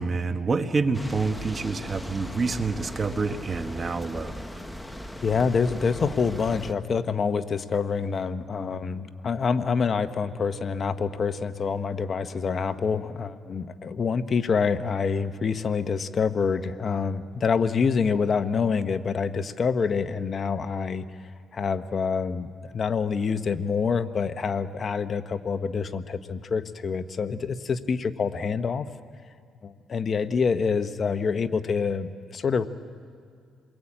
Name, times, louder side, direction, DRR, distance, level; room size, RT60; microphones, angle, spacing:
voice 1, 0.0-4.4, right 4 dB, 40° right, 8 dB, 1.5 m, -27 dB
sound 1, 0.9-6.7, equal, 5° left, 1.3 m, -38 dB
voice 2, 5.2-21.0 21.5-28.8 29.6-32.7, left 5 dB, 45° left, 10 dB, 1.0 m, -26 dB
28.5 x 22.0 x 8.8 m, 2.3 s
cardioid pair, 90°, 0 cm